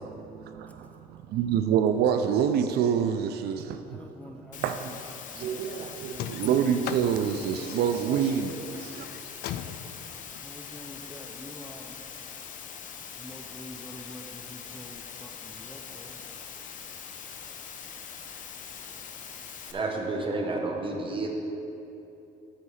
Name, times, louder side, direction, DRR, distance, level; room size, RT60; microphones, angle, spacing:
voice 1, 0.0-5.0 5.4-9.1, right 8 dB, 70° right, 0.4 m, -27 dB
voice 2, 3.9-6.5 10.3-11.9 12.6-12.7 13.0-16.2, left 1 dB, 10° left, 0.6 m, -47 dB
Water, 4.5-19.7, left 7 dB, 50° left, 0.8 m, -42 dB
sound 1, 6.1-11.3, left 10 dB, 70° left, 0.4 m, -39 dB
voice 3, 19.7-21.3, right 2 dB, 30° right, 1.3 m, -30 dB
12.5 x 4.7 x 4.2 m
cardioid pair, 110°, 17 cm